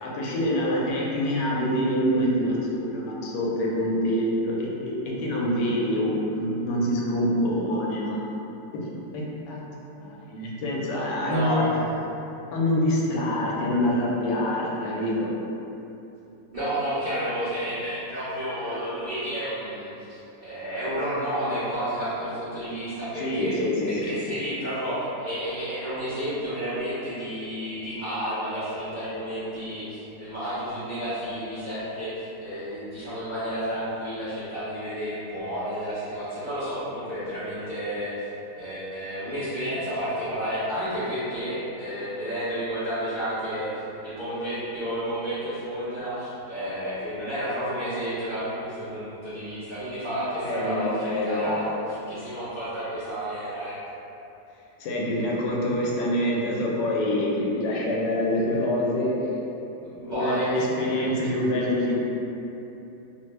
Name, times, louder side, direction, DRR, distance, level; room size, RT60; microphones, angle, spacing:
voice 1, 0.0-2.6 2.9-8.2 8.7-8.8 9.1-9.6 10.0-11.8 12.5-15.3 23.2-24.1 50.4-51.5 54.8-59.3 60.0-62.0, left 1 dB, 80° left, -4 dB, 1.2 m, -26 dB
voice 2, 11.2-12.0 16.5-23.5 23.9-38.3 38.5-53.8 59.8-60.5, equal, 70° right, -14 dB, 0.4 m, -31 dB
3.0 x 2.1 x 3.1 m, 2.9 s
omnidirectional pair, 1.9 m